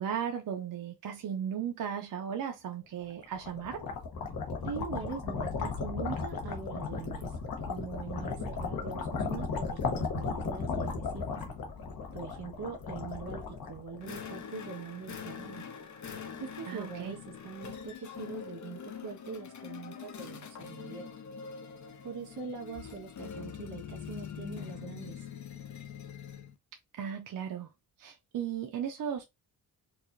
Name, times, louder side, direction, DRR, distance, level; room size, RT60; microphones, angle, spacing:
voice 1, 0.0-3.8 16.7-17.2 26.9-27.7 28.0-29.2, right 8 dB, 60° right, 0.5 m, -36 dB
sound 1, 3.1-14.3, left 4 dB, 65° left, 1.0 m, -35 dB
voice 2, 4.6-7.4 7.7-11.4 12.1-15.6 16.4-17.2 17.4-21.1 22.0-25.3, right 5 dB, 80° right, 1.5 m, -42 dB
sound 2, 14.0-26.5, left 7 dB, 50° left, 0.6 m, -44 dB
4.7 x 2.4 x 2.5 m
wide cardioid pair, 170°, 38 cm